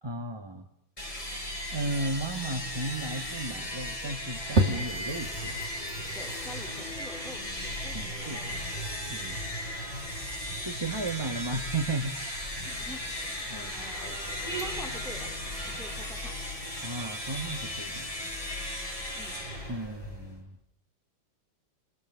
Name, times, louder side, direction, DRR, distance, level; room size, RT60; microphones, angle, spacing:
voice 1, 0.0-0.7 1.7-5.6 7.9-8.7 9.1-9.4 10.6-12.5 13.5-13.7 16.8-18.1 19.7-20.6, right 2 dB, 15° right, 5 dB, 1.1 m, -35 dB
sound 1, 1.0-20.4, left 1 dB, 15° left, 8.0 m, -36 dB
sound 2, 4.6-18.6, right 2 dB, 35° right, 2.7 m, -38 dB
voice 2, 6.1-8.4 12.6-14.2 14.5-15.3 15.6-16.3 19.1-19.4, equal, ahead, 2 dB, 3.8 m, -47 dB
29.0 x 28.0 x 6.8 m, 0.70 s
omnidirectional pair, 2.2 m